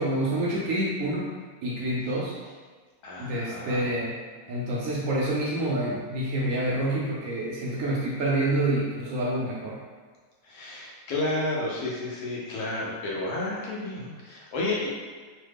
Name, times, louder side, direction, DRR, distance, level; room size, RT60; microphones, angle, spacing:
voice 1, 0.0-1.3 1.6-2.4 3.2-4.2 4.5-9.8, right 1 dB, 70° right, -5 dB, 0.8 m, -27 dB
voice 2, 3.0-3.9 10.4-14.9, left 2 dB, 75° left, -5 dB, 1.2 m, -31 dB
3.1 x 2.2 x 3.3 m, 1.5 s
omnidirectional pair, 1.7 m